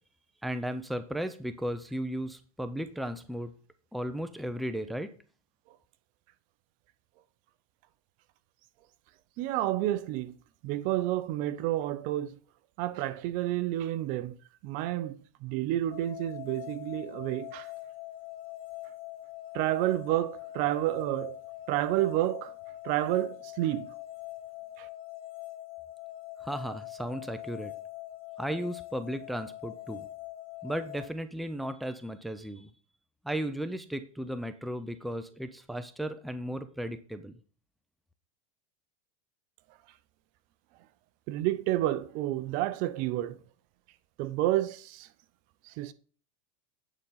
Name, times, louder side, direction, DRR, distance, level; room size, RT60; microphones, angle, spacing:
voice 1, 0.4-3.5 3.9-5.1 26.4-27.7 28.4-30.1 30.6-32.7 33.2-37.3, equal, ahead, 0.5 m, -35 dB
voice 2, 9.4-10.3 10.6-12.4 12.8-14.4 14.6-15.1 15.4-17.7 19.5-21.4 21.7-22.5 22.8-23.9 24.8-24.9 41.3-43.4 44.2-45.1 45.7-45.9, right 14 dB, 45° right, 0.6 m, -30 dB
sound 1, 15.9-31.1, left 15 dB, 30° left, 2.3 m, -43 dB
9.2 x 4.0 x 5.6 m
supercardioid pair, 130°, 18 cm